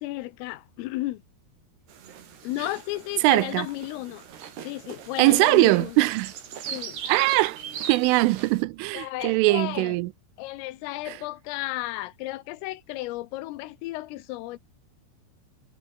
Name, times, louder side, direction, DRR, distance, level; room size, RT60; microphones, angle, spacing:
voice 1, 0.0-1.2 2.4-4.3 4.6-6.0 6.7-7.0 8.9-10.0 10.4-14.6, left 18 dB, 90° left, 3.7 m, -33 dB
sound 1, 1.9-8.6, right 8 dB, 60° right, 4.9 m, -39 dB
voice 2, 3.2-3.7 5.2-6.3 7.1-7.6 7.9-10.1 11.1-11.2, right 21 dB, 80° right, 3.2 m, -21 dB
omnidirectional pair, 5.7 m